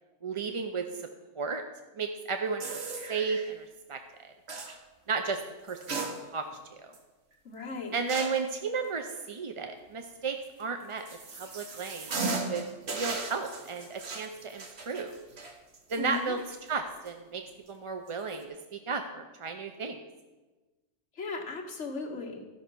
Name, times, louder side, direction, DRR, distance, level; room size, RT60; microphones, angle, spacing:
voice 1, 0.2-1.1 1.4-1.6 2.0-2.8 3.1-4.3 5.1-6.4 6.8-6.9 7.9-11.0 11.3-12.6 12.9-15.2 15.9-17.4 17.7-18.5 18.7-20.0, right 5 dB, 40° right, 6 dB, 0.4 m, -34 dB
sound 1, 2.6-3.5 4.5-4.8 5.7-6.6 6.9-7.0 8.1-8.5 10.6-16.7 17.1-17.2 18.1-18.4, right 3 dB, 60° right, 1.4 m, -37 dB
voice 2, 7.4-7.9 16.0-16.4 21.2-22.4, left 4 dB, 70° left, 0 dB, 1.7 m, -36 dB
13.0 x 5.6 x 6.1 m, 1.2 s
omnidirectional pair, 1.3 m